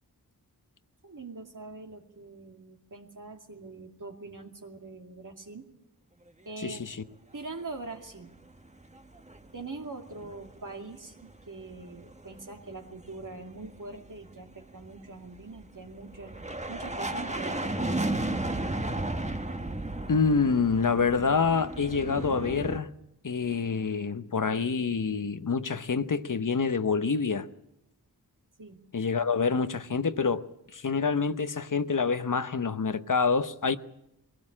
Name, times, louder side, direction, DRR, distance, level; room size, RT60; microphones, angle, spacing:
voice 1, 1.0-5.7 6.4-6.8 7.3-8.3 9.5-16.4 16.7-18.3 28.6-28.8, right 3 dB, 55° right, 2.5 m, -43 dB
voice 2, 6.6-7.0 20.1-22.9 23.2-27.5 28.9-30.4 30.7-33.8, left 5 dB, 55° left, 1.0 m, -27 dB
sound 1, 8.6-9.6 9.8-10.7 11.0-22.8, right 2 dB, 20° right, 1.3 m, -34 dB
20.5 x 17.0 x 8.7 m
cardioid pair, 50°, 37 cm